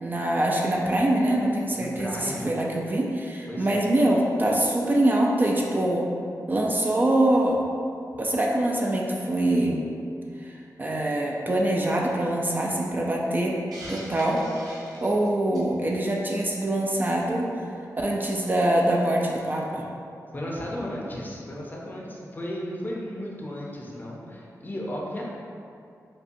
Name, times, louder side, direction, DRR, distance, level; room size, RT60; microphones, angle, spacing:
voice 1, 0.0-6.1 6.5-7.6 8.2-9.9 10.4-10.5 10.8-13.6 13.9-14.5 15.0-17.5 18.0-19.8, right 1 dB, 30° right, -1 dB, 0.4 m, -24 dB
voice 2, 1.7-2.5 3.5-3.8 20.3-25.2, equal, 30° left, -3 dB, 0.6 m, -34 dB
Hiss, 13.7-15.8, right 1 dB, 80° right, 0.8 m, -42 dB
5.2 x 2.1 x 2.6 m, 2.5 s
wide cardioid pair, 90°, 6 cm